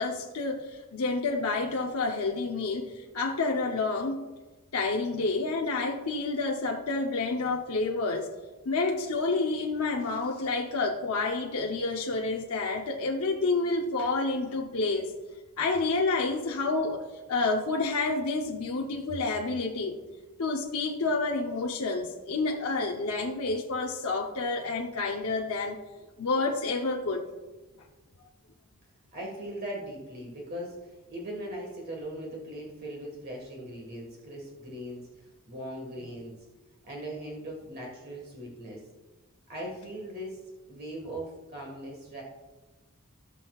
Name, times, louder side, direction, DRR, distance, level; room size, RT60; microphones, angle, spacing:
voice 1, 0.0-4.2 4.7-8.3 8.6-15.1 15.6-17.0 17.3-20.0 20.4-25.8 26.2-27.3, left 3 dB, 80° left, 1 dB, 0.8 m, -29 dB
voice 2, 29.1-36.4 36.9-38.8 39.5-40.4 40.7-42.2, right 1 dB, 45° right, -2 dB, 1.6 m, -39 dB
17.0 x 6.3 x 2.4 m, 1.2 s
head